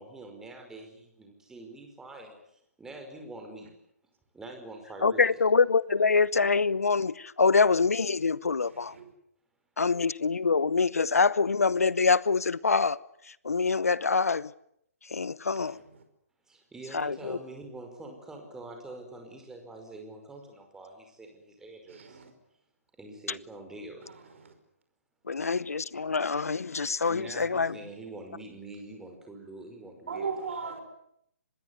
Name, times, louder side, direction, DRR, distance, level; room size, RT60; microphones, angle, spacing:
voice 1, 0.0-3.7 4.3-5.4 16.5-22.2 23.0-24.1 27.1-30.7, right 2 dB, 5° right, 5.2 m, -45 dB
voice 2, 5.0-8.9 9.8-13.0 13.4-14.5 15.1-15.8 16.9-17.4 25.3-27.8, left 4 dB, 70° left, 1.0 m, -25 dB
voice 3, 8.6-9.1 15.5-16.0 21.9-22.3 24.0-24.5 30.1-30.8, right 5 dB, 55° right, 5.5 m, -38 dB
25.5 x 21.0 x 9.6 m
figure-of-eight pair, 135°, 8 cm